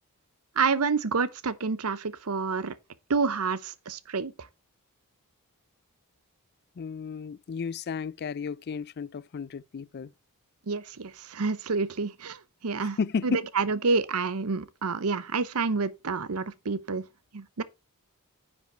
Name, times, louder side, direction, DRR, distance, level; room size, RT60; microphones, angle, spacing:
voice 1, 0.6-2.7 3.1-4.3 10.7-17.0 17.3-17.6, right 4 dB, 80° right, 0.8 m, -28 dB
voice 2, 6.8-10.1 12.8-13.4, left 5 dB, 45° left, 0.4 m, -33 dB
10.0 x 5.3 x 4.4 m
head